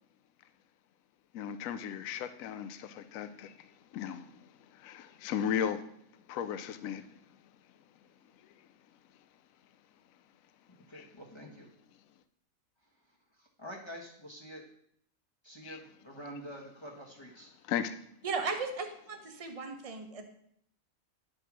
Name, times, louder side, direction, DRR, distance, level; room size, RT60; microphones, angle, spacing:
voice 1, 1.3-3.5 3.9-4.3 4.8-5.8 6.3-7.1 10.9-11.1 15.6-15.8 17.7-18.0, left 8 dB, 75° left, 11 dB, 1.0 m, -35 dB
voice 2, 10.9-11.7 13.4-14.6 15.4-17.5, equal, 20° left, -1 dB, 1.2 m, -47 dB
voice 3, 18.2-20.3, right 4 dB, 30° right, 5 dB, 1.0 m, -36 dB
10.0 x 5.1 x 6.0 m, 0.69 s
omnidirectional pair, 1.5 m